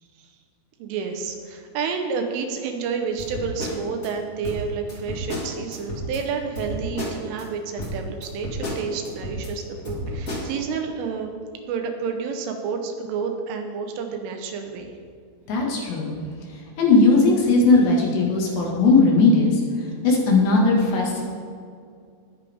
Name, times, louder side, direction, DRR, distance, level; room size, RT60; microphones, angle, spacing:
voice 1, 0.8-11.3 11.7-14.9 20.1-20.2, right 5 dB, 80° right, 5 dB, 3.7 m, -30 dB
sound 1, 3.2-4.1 4.4-6.2 6.6-7.4 7.8-9.5 9.8-10.5, equal, 45° left, 1.1 m, -32 dB
voice 2, 15.5-16.1 16.8-19.6 20.0-21.2, left 3 dB, 65° left, -2 dB, 4.0 m, -18 dB
20.0 x 9.7 x 3.7 m, 2.3 s
omnidirectional pair, 5.7 m